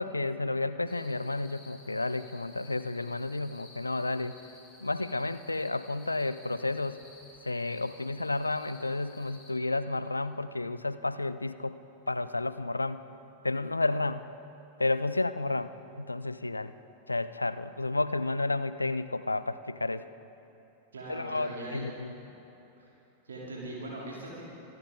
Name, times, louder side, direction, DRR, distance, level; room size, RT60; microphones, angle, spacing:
voice 1, 0.0-4.4 4.8-7.0 7.4-11.8 12.1-13.0 13.4-14.2 14.8-15.7 16.0-16.7 17.1-20.0 21.1-22.1, left 2 dB, 80° left, 14 dB, 0.3 m, -31 dB
sound 1, 0.9-9.5, left 3 dB, 15° left, 3.5 m, -55 dB
voice 2, 20.9-21.8 22.8-22.9 23.3-24.5, right 1 dB, 70° right, -4 dB, 2.8 m, -40 dB
25.5 x 9.3 x 3.6 m, 2.9 s
figure-of-eight pair, 90°, 0 cm